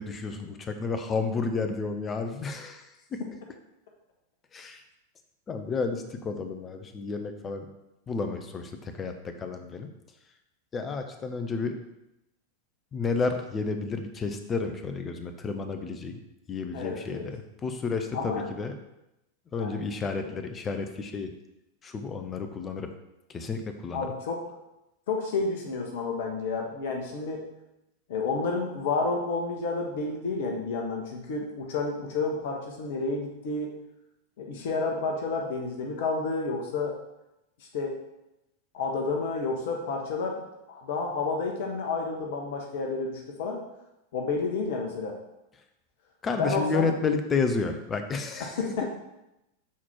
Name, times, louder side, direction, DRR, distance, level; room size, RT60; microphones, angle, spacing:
voice 1, 0.0-3.2 4.5-4.8 5.5-7.7 8.1-9.9 10.7-11.7 12.9-16.2 16.5-18.7 19.5-21.3 21.8-22.9 23.3-24.1 46.2-48.6, left 4 dB, 20° left, 6 dB, 0.8 m, -31 dB
voice 2, 16.7-17.3 18.1-18.5 19.6-19.7 23.9-24.4 25.1-27.5 28.1-33.7 34.4-36.9 37.7-37.9 38.7-40.4 40.7-43.6 44.1-45.2 46.4-46.9 48.4-48.9, left 3 dB, 55° left, 1 dB, 1.1 m, -30 dB
7.4 x 4.3 x 4.4 m, 0.91 s
figure-of-eight pair, 90°, 0 cm